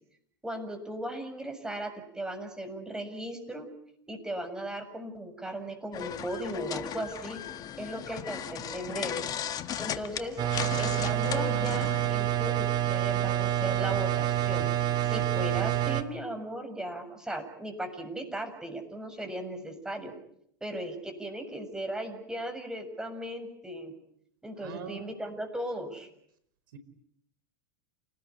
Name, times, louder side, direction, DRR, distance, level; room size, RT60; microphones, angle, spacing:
voice 1, 0.4-3.7 4.1-7.4 7.8-9.2 9.8-10.4 10.8-20.1 20.6-23.9 24.4-26.1, right 1 dB, 5° right, 6 dB, 7.2 m, -37 dB
sound 1, 5.9-12.1, left 9 dB, 35° left, 1.8 m, -36 dB
sound 2, 10.4-16.0, right 12 dB, 40° right, 2.5 m, -27 dB
voice 2, 24.6-25.2 26.7-26.8, right 6 dB, 75° right, 13 dB, 5.1 m, -42 dB
29.0 x 19.5 x 9.9 m, 0.71 s
hypercardioid pair, 105°, 11 cm